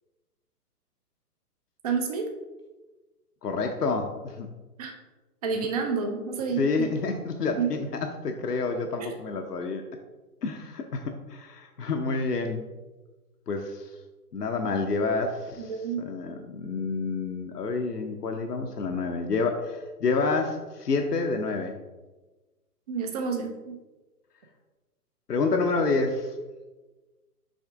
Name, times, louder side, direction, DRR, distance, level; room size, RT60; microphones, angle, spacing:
voice 1, 1.8-2.3 4.8-4.9 5.4-6.9 7.6-7.7 9.0-9.1 15.6-16.0 22.9-23.8, right 5 dB, 25° right, 5 dB, 0.5 m, -29 dB
voice 2, 3.4-4.5 6.6-7.9 8.2-9.8 10.4-12.6 13.5-13.9 14.3-15.7 16.0-21.8 25.3-26.3, left 3 dB, 80° left, 4 dB, 0.8 m, -28 dB
6.3 x 4.9 x 3.4 m, 1.2 s
figure-of-eight pair, 120°, 47 cm